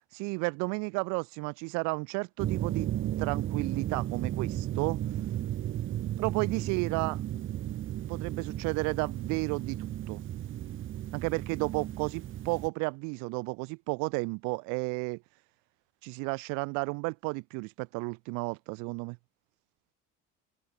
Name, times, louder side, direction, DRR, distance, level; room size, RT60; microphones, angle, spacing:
voice 1, 0.1-5.0 6.2-7.2 8.1-10.2 11.1-15.2 16.0-19.2, right 33 dB, 90° right, 0.5 m, -32 dB
sound 1, 2.4-12.7, right 12 dB, 45° right, 0.7 m, -34 dB
open air
cardioid pair, 120°, 29 cm